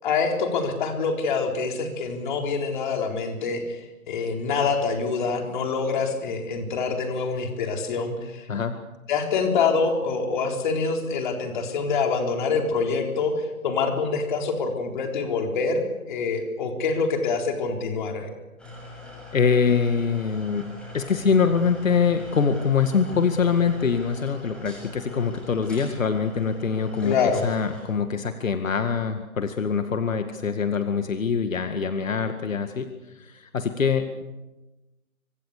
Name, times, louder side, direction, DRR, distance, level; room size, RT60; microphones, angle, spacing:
voice 1, 0.0-3.8 4.1-8.5 9.1-18.3 27.0-27.4, left 4 dB, 35° left, 3 dB, 4.0 m, -25 dB
sound 1, 18.6-27.8, left 2 dB, ahead, 7.4 m, -42 dB
voice 2, 19.3-20.6 20.9-34.2, left 6 dB, 65° left, 7 dB, 2.1 m, -24 dB
26.0 x 25.5 x 6.8 m, 1.1 s
hypercardioid pair, 155°, 42 cm